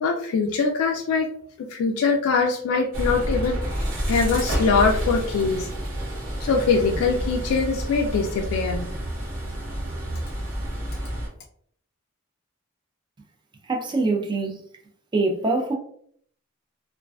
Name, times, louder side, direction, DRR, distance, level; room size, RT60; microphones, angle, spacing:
voice 1, 0.0-1.3 1.6-3.7 4.1-5.7 6.4-8.9, left 4 dB, 85° left, 0.3 m, -23 dB
sound 1, 2.9-11.3, right 1 dB, 70° right, 1.0 m, -29 dB
voice 2, 13.7-14.6 15.1-15.7, right 3 dB, 20° right, 0.3 m, -24 dB
2.4 x 2.2 x 2.3 m
head